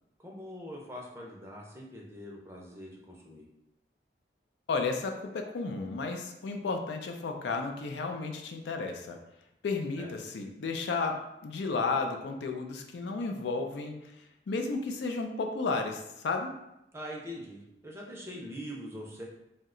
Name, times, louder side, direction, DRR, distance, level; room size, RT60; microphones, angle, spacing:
voice 1, 0.2-3.4 10.0-10.1 16.9-19.2, equal, 15° right, -2 dB, 0.5 m, -43 dB
voice 2, 4.7-9.2 9.6-14.1 14.5-16.5, left 4 dB, 80° left, 4 dB, 0.4 m, -33 dB
2.7 x 2.1 x 3.7 m, 0.85 s
head